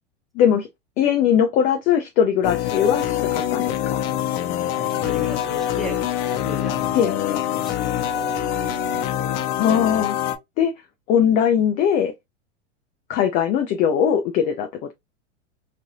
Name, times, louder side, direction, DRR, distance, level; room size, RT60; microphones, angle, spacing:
voice 1, 0.4-0.7 1.0-4.0 6.9-7.1 9.6-10.2 10.6-10.7 11.1-12.1 13.1-14.9, left 8 dB, 25° left, 0.3 m, -20 dB
sound 1, 2.4-10.4, left 11 dB, 45° left, 0.8 m, -24 dB
voice 2, 4.7-6.0 6.3-7.0 7.3-7.8, equal, ahead, 0.9 m, -36 dB
3.3 x 2.5 x 2.7 m
hypercardioid pair, 115°, 36 cm